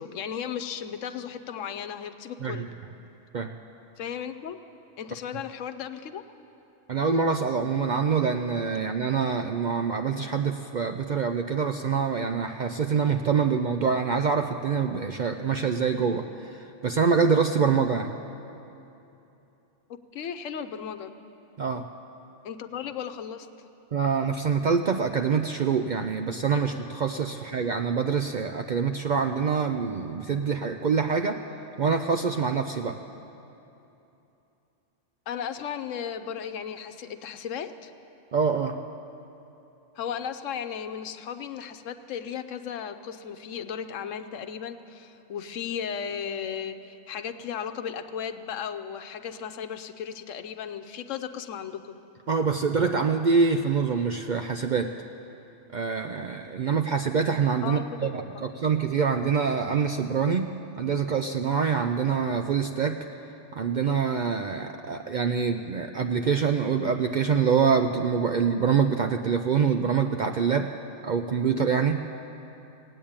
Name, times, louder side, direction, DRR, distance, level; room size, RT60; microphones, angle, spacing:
voice 1, 0.0-2.7 4.0-4.6 5.0-6.2 19.9-21.1 22.4-23.5 35.3-37.9 40.0-52.0 57.6-58.5, left 8 dB, 80° left, 9 dB, 1.1 m, -35 dB
voice 2, 6.9-18.2 21.6-21.9 23.9-31.4 31.8-33.0 38.3-38.8 52.3-54.9 55.7-63.0 63.5-70.7 71.0-72.0, right 6 dB, 60° right, 6 dB, 0.5 m, -25 dB
17.0 x 8.9 x 8.7 m, 2.9 s
omnidirectional pair, 1.3 m